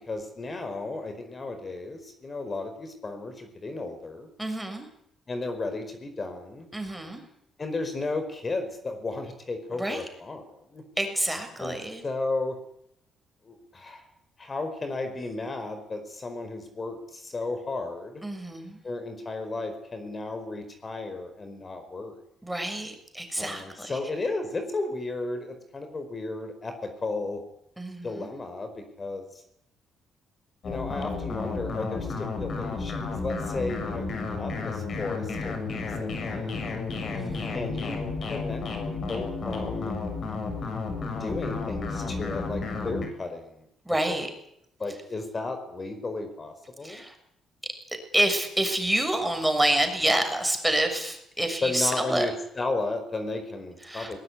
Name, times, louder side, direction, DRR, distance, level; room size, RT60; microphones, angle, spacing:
voice 1, 0.0-4.3 5.3-6.7 7.6-10.8 11.6-11.8 12.0-12.6 13.4-14.0 14.4-18.2 18.8-22.2 23.4-27.4 28.0-29.4 30.6-36.8 37.5-38.0 38.3-40.0 41.2-43.7 44.1-44.3 44.8-47.0 51.6-54.2, left 3 dB, 35° left, 8 dB, 4.9 m, -34 dB
voice 2, 4.4-4.9 6.7-7.2 9.8-10.0 11.0-12.0 18.2-18.8 22.4-23.9 27.8-28.3 37.1-37.5 43.9-44.3 46.8-47.1 48.1-52.3 53.9-54.1, right 1 dB, 5° right, 6 dB, 6.7 m, -27 dB
sound 1, 30.6-43.1, left 4 dB, 55° left, 7.4 m, -32 dB
22.0 x 20.0 x 9.9 m, 0.75 s
cardioid pair, 90°, 0 cm